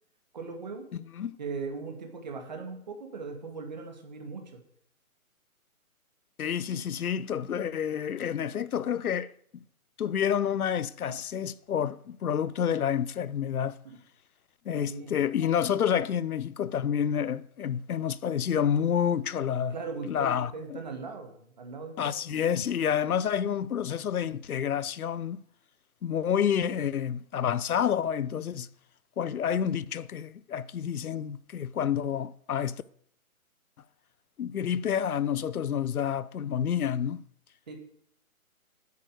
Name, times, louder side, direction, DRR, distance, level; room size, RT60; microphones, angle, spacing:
voice 1, 0.3-0.9 1.4-4.6 13.8-14.0 14.9-15.1 19.7-22.4 37.7-37.8, right 4 dB, 30° right, 2.1 m, -39 dB
voice 2, 6.4-9.3 10.0-13.8 14.7-19.7 20.1-20.8 22.0-25.4 26.0-28.7 29.2-32.8 34.4-37.2, left 8 dB, 85° left, 0.8 m, -29 dB
9.3 x 8.4 x 7.8 m
hypercardioid pair, 180°, 43 cm